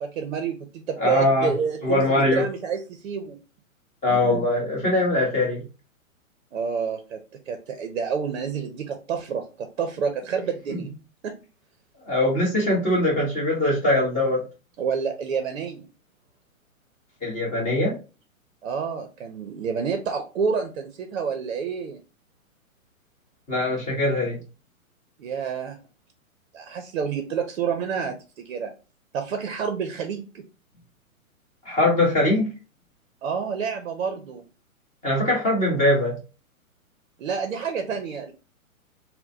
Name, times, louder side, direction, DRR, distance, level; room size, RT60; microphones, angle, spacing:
voice 1, 0.0-3.4 4.1-4.3 6.5-7.2 7.5-10.9 11.2-11.4 14.8-15.9 18.6-22.0 25.2-25.8 26.5-28.7 29.1-30.4 33.2-34.4 37.2-38.3, right 6 dB, 55° right, 6 dB, 0.6 m, -29 dB
voice 2, 1.0-1.5 1.8-2.4 4.0-5.6 12.1-14.4 17.2-17.9 23.5-24.4 31.6-32.5 35.0-36.2, left 1 dB, 15° left, -4 dB, 1.3 m, -22 dB
3.7 x 2.2 x 2.6 m, 0.32 s
figure-of-eight pair, 125°, 42 cm